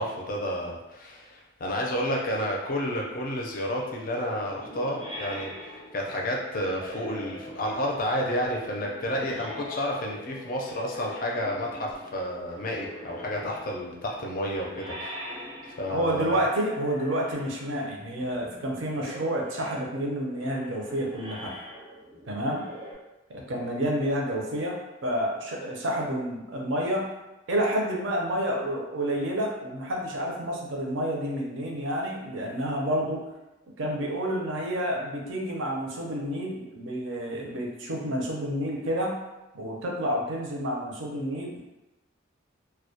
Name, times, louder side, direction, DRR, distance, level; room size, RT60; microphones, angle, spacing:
voice 1, 0.0-15.3 15.8-16.4, equal, 45° left, -1 dB, 0.4 m, -31 dB
sound 1, 4.4-22.9, left 1 dB, 25° right, 0.5 m, -43 dB
voice 2, 15.9-21.5 22.3-22.6 23.3-27.1 27.5-33.3 33.8-39.2 39.5-41.6, equal, 70° right, -1 dB, 0.5 m, -29 dB
2.2 x 2.1 x 2.7 m, 1.0 s
head